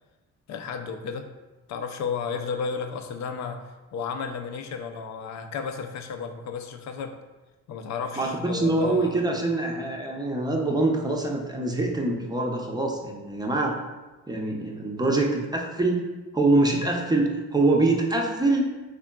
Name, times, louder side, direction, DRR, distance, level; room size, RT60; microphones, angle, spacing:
voice 1, 0.5-1.3 1.7-3.6 3.9-7.1 7.7-9.2, left 5 dB, 65° left, 7 dB, 0.5 m, -33 dB
voice 2, 8.2-13.8 14.3-16.0 16.3-18.7, right 2 dB, 15° right, 0 dB, 0.5 m, -24 dB
3.6 x 3.6 x 2.2 m, 1.2 s
cardioid pair, 90°, 30 cm